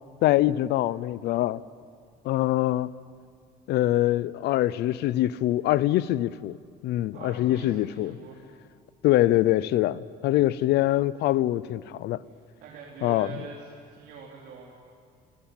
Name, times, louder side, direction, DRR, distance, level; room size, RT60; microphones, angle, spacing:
voice 1, 0.2-1.6 2.2-2.9 3.7-6.6 6.8-8.2 9.0-12.2 13.0-13.5, left 15 dB, 80° left, 0.7 m, -24 dB
voice 2, 7.1-8.4 12.6-14.7, right 5 dB, 75° right, 3.8 m, -44 dB
27.0 x 17.5 x 9.2 m
cardioid pair, 110°, 17 cm